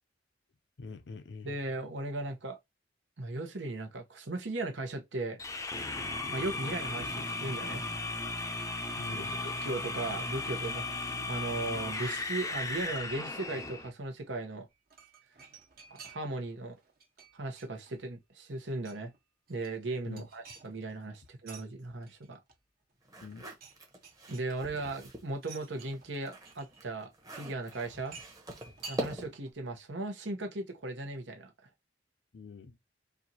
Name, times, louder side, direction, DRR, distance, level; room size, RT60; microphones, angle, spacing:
voice 1, 0.8-1.5 9.0-9.4 20.1-20.3 23.2-23.5 32.3-32.8, left 3 dB, 65° left, 0.6 m, -44 dB
voice 2, 1.4-2.6 3.2-5.4 6.3-7.9 9.1-14.7 15.9-16.8 17.3-19.1 19.5-22.4 24.3-28.2 28.9-31.5, right 2 dB, 80° right, 1.0 m, -37 dB
sound 1, 5.4-13.9, left 3 dB, 20° left, 0.5 m, -36 dB
sound 2, 14.7-16.5 16.8-18.2 18.5-19.2 19.5-21.6 22.0-22.9 23.2-23.8 24.0-24.9 25.4-26.9 27.7-29.5 29.8-29.9, right 5 dB, 55° right, 1.2 m, -52 dB
sound 3, 23.0-25.3 25.7-29.5, right 1 dB, 20° right, 1.0 m, -43 dB
4.4 x 2.5 x 2.8 m
head